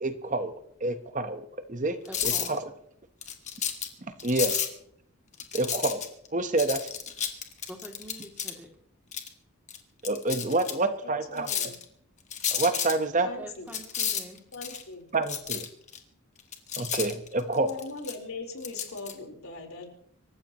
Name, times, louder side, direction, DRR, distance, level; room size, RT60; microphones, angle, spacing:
voice 1, 0.0-1.4 1.7-2.0 2.2-2.6 4.2-4.6 5.5-6.0 6.3-6.8 10.0-11.7 12.5-13.3 15.1-15.6 16.8-17.7, right 2 dB, 35° right, 1.1 m, -28 dB
voice 2, 2.0-2.6 7.7-8.7 13.4-14.4, right 1 dB, 10° right, 2.6 m, -45 dB
sound 1, 2.1-2.6 3.2-3.9 4.2-4.7 5.3-6.3 6.6-8.5 9.1-9.3 9.7-9.8 10.0-10.7 11.4-11.8 12.3-12.9 13.7-14.8 15.3-16.0 16.4-18.2 18.6-19.1, left 8 dB, 35° left, 1.7 m, -31 dB
voice 3, 10.6-11.7 13.2-13.7 14.5-15.1 17.5-19.9, left 3 dB, 85° left, 4.2 m, -40 dB
26.0 x 14.5 x 3.0 m
head